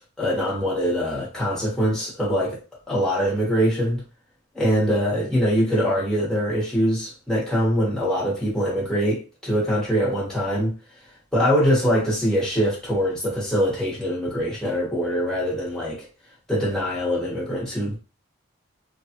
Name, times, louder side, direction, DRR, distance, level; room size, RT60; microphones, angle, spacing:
voice 1, 0.2-2.6 2.9-4.0 4.5-10.7 11.3-16.1 16.5-18.0, equal, 5° left, 1.1 m, -23 dB
3.2 x 2.3 x 2.8 m
head